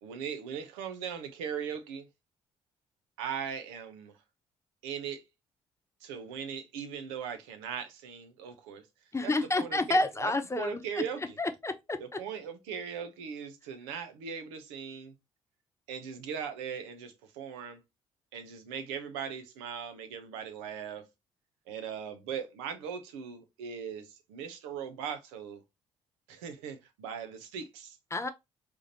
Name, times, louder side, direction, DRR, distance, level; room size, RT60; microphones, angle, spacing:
voice 1, 0.0-2.1 3.2-4.1 4.8-5.2 6.0-8.9 9.2-11.4 12.0-15.1 15.9-17.8 18.3-21.0 21.7-25.6 26.3-28.0, right 7 dB, 75° right, 0.9 m, -39 dB
voice 2, 9.1-11.0 11.4-12.2 28.1-28.3, left 2 dB, 20° left, 0.9 m, -29 dB
4.9 x 3.5 x 2.8 m
figure-of-eight pair, 45°, 15 cm